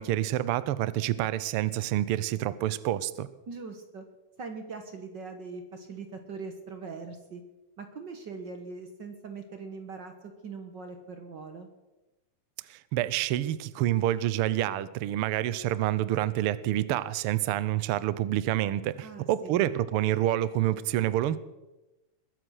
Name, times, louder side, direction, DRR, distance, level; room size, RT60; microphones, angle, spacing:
voice 1, 0.0-3.3 12.7-21.4, right 13 dB, 90° right, 15 dB, 1.2 m, -28 dB
voice 2, 3.5-4.0 4.4-7.4 7.8-11.7 19.0-19.6, right 4 dB, 50° right, 6 dB, 1.4 m, -41 dB
21.5 x 8.1 x 6.4 m, 1.0 s
omnidirectional pair, 3.4 m